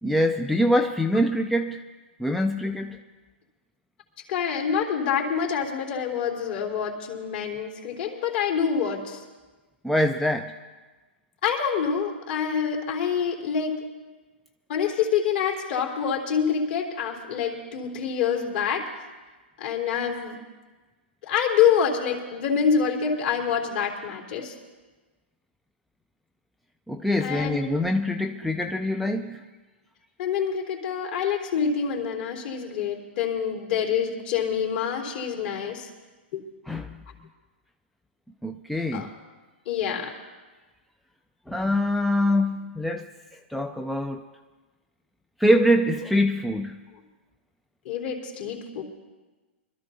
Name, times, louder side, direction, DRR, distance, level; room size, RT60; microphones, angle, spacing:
voice 1, 0.0-1.8 2.2-3.0 9.8-10.5 26.9-29.4 36.7-36.9 38.4-39.1 41.5-43.1 43.5-44.3 45.4-46.8, equal, ahead, 4 dB, 0.4 m, -24 dB
voice 2, 4.3-9.2 11.4-13.8 14.7-18.9 19.6-20.4 21.2-24.5 27.2-27.7 30.2-35.9 36.3-36.4 38.9-39.1 39.6-40.1 47.8-48.8, left 7 dB, 50° left, 1 dB, 3.1 m, -26 dB
25.0 x 13.0 x 2.7 m, 1.3 s
hypercardioid pair, 150°, 7 cm